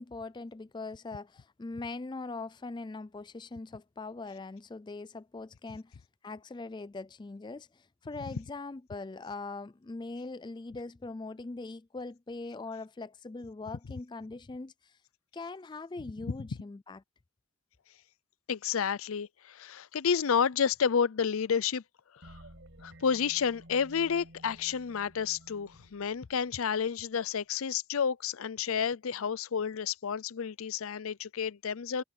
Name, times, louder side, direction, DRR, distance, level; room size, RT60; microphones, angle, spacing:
voice 1, 0.0-15.0 15.3-17.0, left 3 dB, 20° left, 0.3 m, -41 dB
voice 2, 18.5-21.8 22.8-32.0, left 7 dB, 75° left, 0.5 m, -30 dB
sound 1, 22.2-26.9, equal, 60° right, 5.8 m, -54 dB
head